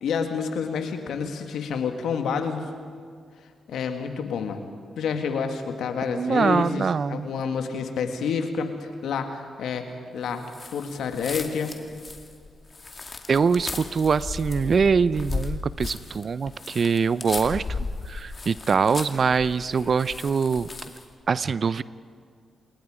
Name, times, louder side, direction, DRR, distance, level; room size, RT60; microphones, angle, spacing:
voice 1, 0.0-2.7 3.7-4.6 5.0-10.4 10.7-11.8, left 6 dB, 80° left, 6 dB, 2.0 m, -29 dB
voice 2, 6.2-7.3 13.3-17.8 18.1-20.7 21.3-21.8, right 5 dB, 55° right, 17 dB, 0.5 m, -23 dB
sound 1, 10.5-21.1, left 3 dB, 40° left, 2.3 m, -36 dB
27.5 x 20.5 x 5.0 m, 2.2 s
supercardioid pair, 50°, 0 cm